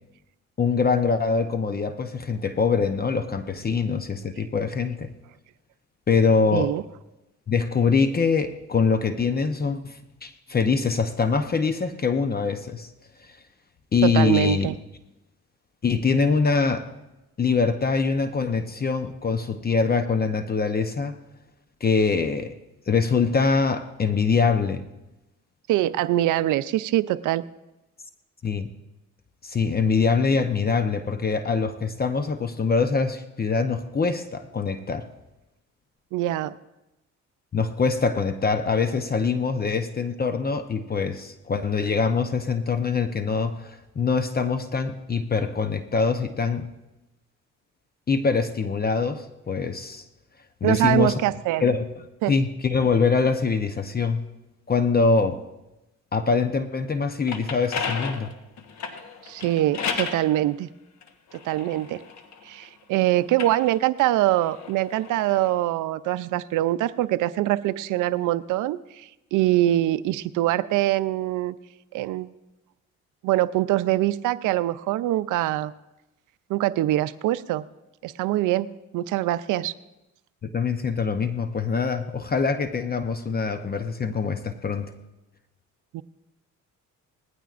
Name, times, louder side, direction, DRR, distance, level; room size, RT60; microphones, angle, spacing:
voice 1, 0.6-5.1 6.1-6.7 7.5-12.9 13.9-14.7 15.8-16.9 17.4-21.1 21.8-22.5 22.9-24.8 28.4-28.7 29.4-35.0 37.5-46.7 48.1-50.0 50.6-51.2 51.6-51.9 52.3-54.2 54.7-55.4 56.1-58.3 80.4-84.9, left 5 dB, 30° left, 9 dB, 0.7 m, -24 dB
voice 2, 6.5-6.8 14.0-14.7 25.7-27.4 36.1-36.5 50.6-51.6 52.2-52.3 59.2-60.7 61.3-62.0 62.4-71.5 71.9-72.3 73.2-75.7 76.5-77.6 78.0-78.7 78.9-79.7 85.9-86.0, right 15 dB, 85° right, 15 dB, 0.5 m, -23 dB
sound 1, 57.0-60.3 61.0-62.7 63.2-65.5, left 5 dB, 65° left, 1.3 m, -34 dB
19.5 x 15.0 x 2.5 m, 0.98 s
cardioid pair, 90°, 30 cm